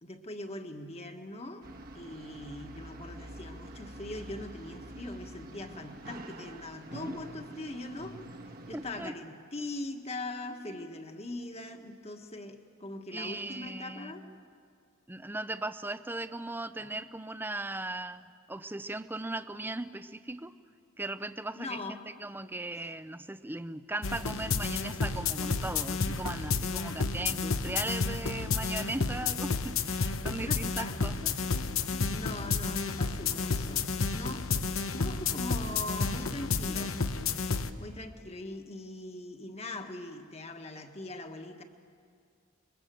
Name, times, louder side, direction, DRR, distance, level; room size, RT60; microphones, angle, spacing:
voice 1, 0.0-1.6 1.9-8.2 8.7-14.3 16.8-16.9 21.5-22.0 30.5-31.0 32.1-34.5 34.9-37.0 37.3-37.5 37.8-41.6, left 2 dB, 30° left, 5 dB, 1.5 m, -41 dB
sound 1, 1.6-9.1, right 1 dB, 45° right, 1.4 m, -46 dB
voice 2, 8.7-9.1 10.7-10.9 13.1-14.4 15.1-20.5 21.0-31.4, right 2 dB, 10° right, 12 dB, 0.6 m, -38 dB
Kick and Acid Bass Loop, 24.0-37.7, left 4 dB, 80° left, 1.0 m, -31 dB
27.0 x 22.0 x 7.7 m, 2.2 s
head